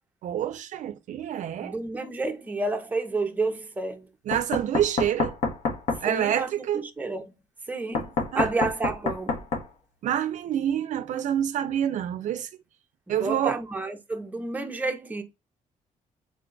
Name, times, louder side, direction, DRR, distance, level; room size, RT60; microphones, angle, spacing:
voice 1, 0.2-1.7 4.3-5.3 6.0-6.8 8.3-8.5 10.0-12.5 13.1-13.6, right 10 dB, 65° right, 0.4 m, -27 dB
voice 2, 1.6-4.1 6.1-7.3 7.7-9.4 13.2-15.2, right 3 dB, 10° right, 0.6 m, -30 dB
Knock, 4.3-6.0 7.9-9.7, left 3 dB, 60° left, 0.9 m, -27 dB
3.8 x 2.2 x 3.7 m
cardioid pair, 130°, 14 cm